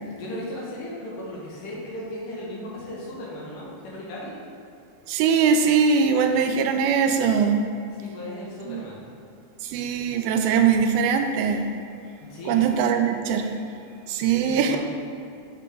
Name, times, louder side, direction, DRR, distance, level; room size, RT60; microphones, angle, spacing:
voice 1, 0.0-4.4 7.9-9.0 12.3-12.6 14.4-14.8, left 1 dB, 70° left, -5 dB, 2.7 m, -36 dB
voice 2, 5.1-7.6 8.7-8.8 9.6-11.7 12.5-13.5 14.1-14.8, right 6 dB, 90° right, 6 dB, 2.4 m, -21 dB
6.7 x 5.8 x 3.8 m, 2.6 s
omnidirectional pair, 4.2 m